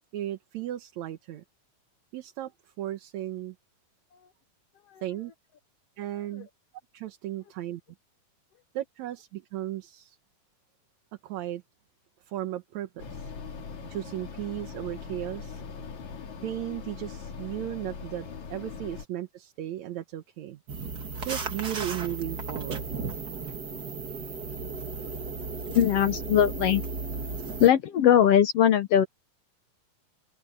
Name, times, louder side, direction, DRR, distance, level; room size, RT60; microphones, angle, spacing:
voice 1, 0.1-1.4 2.1-2.5 2.8-3.5 5.0-5.3 6.0-6.5 6.9-7.8 8.7-10.2 11.2-11.6 12.3-13.3 13.9-15.6 16.4-20.6 21.2-22.9, right 13 dB, 65° right, 2.1 m, -35 dB
sound 1, 13.0-19.1, left 5 dB, 55° left, 3.6 m, -41 dB
sound 2, 20.7-27.7, right 4 dB, 35° right, 2.0 m, -35 dB
voice 2, 25.7-26.8 27.6-29.1, left 10 dB, 75° left, 1.4 m, -20 dB
omnidirectional pair, 4.0 m